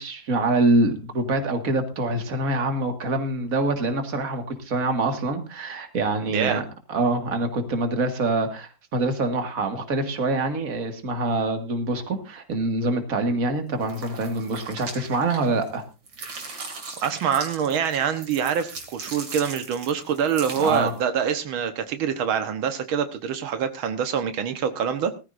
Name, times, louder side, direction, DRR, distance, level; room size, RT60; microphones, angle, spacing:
voice 1, 0.0-15.8 20.6-20.9, right 2 dB, 45° right, 6 dB, 2.2 m, -25 dB
voice 2, 6.3-6.6 17.0-25.1, right 7 dB, 90° right, 8 dB, 2.0 m, -25 dB
sound 1, 13.8-15.8 16.1-21.0, right 4 dB, 70° right, 3.4 m, -39 dB
19.0 x 14.5 x 2.6 m, 0.29 s
omnidirectional pair, 2.2 m